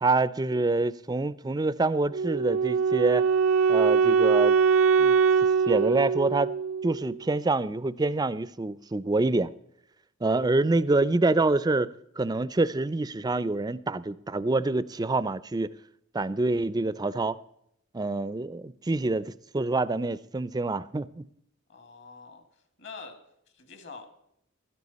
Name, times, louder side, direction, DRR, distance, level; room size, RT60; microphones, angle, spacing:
voice 1, 0.0-3.2 3.7-4.6 5.0-5.2 5.7-6.5 6.8-9.5 10.2-15.7 16.1-17.4 17.9-21.2, right 2 dB, 20° right, 0.4 m, -26 dB
Wind instrument woodwind instrument, 2.1-7.2, right 5 dB, 70° right, 0.5 m, -22 dB
voice 2, 21.7-22.4 22.8-23.2 23.5-24.1, left 4 dB, 60° left, 2.1 m, -45 dB
16.0 x 13.0 x 4.1 m
head